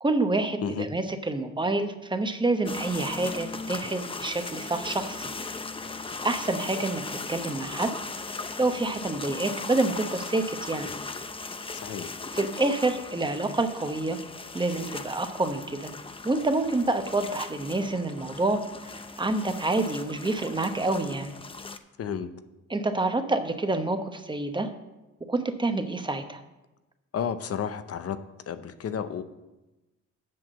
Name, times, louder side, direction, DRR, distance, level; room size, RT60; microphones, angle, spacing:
voice 1, 0.0-5.3 6.2-7.0 7.3-7.9 8.6-10.9 12.3-14.2 14.5-15.9 16.2-18.9 19.2-21.3 22.7-24.7 25.3-26.4, right 2 dB, 15° right, 7 dB, 0.9 m, -27 dB
sound 1, 2.7-21.8, left 3 dB, 20° left, 0.6 m, -38 dB
voice 2, 11.7-12.1 22.0-22.3 27.1-28.2 28.5-29.2, left 8 dB, 50° left, 11 dB, 0.7 m, -31 dB
7.7 x 6.0 x 7.5 m, 1.1 s
cardioid pair, 90°, 30 cm